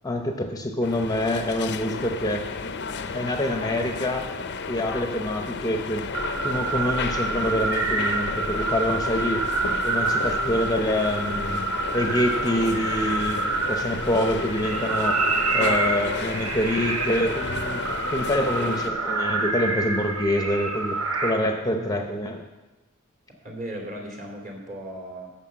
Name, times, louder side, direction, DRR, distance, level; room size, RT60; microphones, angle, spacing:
voice 1, 0.0-2.4 3.1-4.3 4.7-6.0 6.4-9.4 9.8-11.6 11.9-15.2 15.5-17.8 18.1-22.4, left 1 dB, 15° left, 4 dB, 0.8 m, -26 dB
sound 1, 0.8-18.9, left 5 dB, 55° left, 0.7 m, -33 dB
sound 2, 6.1-21.3, right 3 dB, 70° right, 1.3 m, -27 dB
voice 2, 21.7-22.2 23.3-25.3, right 1 dB, 40° right, 1 dB, 2.9 m, -37 dB
11.0 x 6.6 x 7.5 m, 1.1 s
head